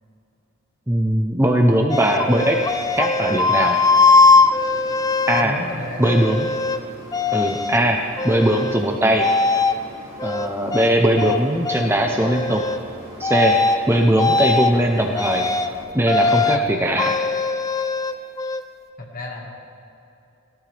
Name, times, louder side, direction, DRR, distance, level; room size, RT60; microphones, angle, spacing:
voice 1, 0.9-2.6 3.0-3.8 5.3-5.5 6.0-6.5 7.3-8.0 8.2-9.3 10.2-12.6 13.2-13.6 13.9-15.4 15.9-17.2, right 1 dB, 10° right, 2 dB, 0.6 m, -19 dB
sound 1, 1.9-5.5 6.0-6.8 7.1-7.8 8.2-8.8 9.2-9.8 10.2-11.4 11.7-11.9 12.2-12.8 13.2-13.8 14.2-14.7 15.2-15.7 16.1-16.6 17.0-18.6, left 3 dB, 15° left, 0.3 m, -20 dB
sound 2, 2.2-15.8, left 1 dB, 60° right, 3.4 m, -42 dB
voice 2, 5.4-6.1 16.6-16.8 19.0-19.5, left 1 dB, 40° left, 0 dB, 1.7 m, -32 dB
17.0 x 13.0 x 3.4 m, 2.8 s
head